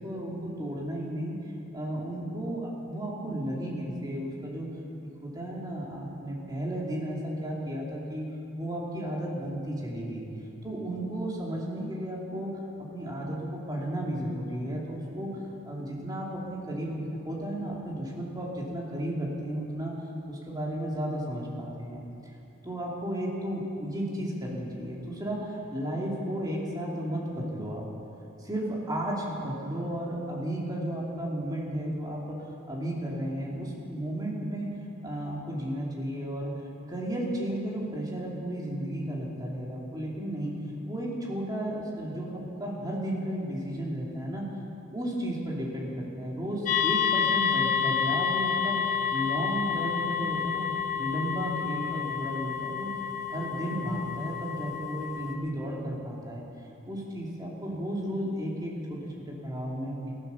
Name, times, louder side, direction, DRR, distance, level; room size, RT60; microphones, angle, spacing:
voice 1, 0.0-1.3 1.7-4.7 5.2-8.3 8.6-10.3 10.6-12.5 12.9-15.3 15.6-19.9 20.3-22.0 22.6-27.8 28.4-32.4 32.7-34.7 35.0-36.5 36.9-40.5 40.9-44.5 44.9-50.7 51.0-52.9 53.3-56.4 56.9-60.1, right 1 dB, 20° right, -3 dB, 2.8 m, -33 dB
sound 1, 46.7-55.3, left 7 dB, 40° left, 1.4 m, -29 dB
15.0 x 12.0 x 7.1 m, 2.8 s
head